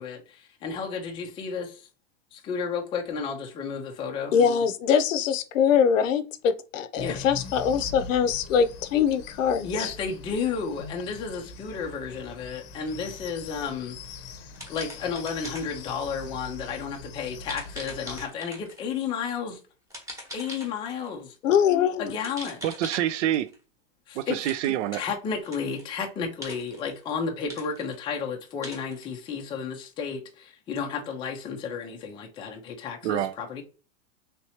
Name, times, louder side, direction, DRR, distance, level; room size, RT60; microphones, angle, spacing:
voice 1, 0.0-1.9 2.3-4.4 7.0-7.3 9.6-14.0 14.7-19.6 20.3-21.3 22.0-22.6 24.1-24.5 24.9-33.6, left 6 dB, 15° left, 0.4 m, -32 dB
voice 2, 4.3-9.9 21.4-22.1, left 7 dB, 85° left, 0.6 m, -23 dB
sound 1, 7.0-18.3, left 4 dB, 45° left, 0.7 m, -42 dB
sound 2, 12.8-13.3 14.5-16.0 17.5-18.9 19.9-21.1 22.1-23.5 24.5-24.9 25.4-26.0 26.4-27.2 27.5-28.2 28.6-29.1, equal, 10° right, 1.0 m, -42 dB
voice 3, 22.6-23.5 24.2-25.0 33.0-33.3, right 12 dB, 65° right, 0.5 m, -26 dB
3.3 x 2.8 x 2.8 m
supercardioid pair, 140°, 38 cm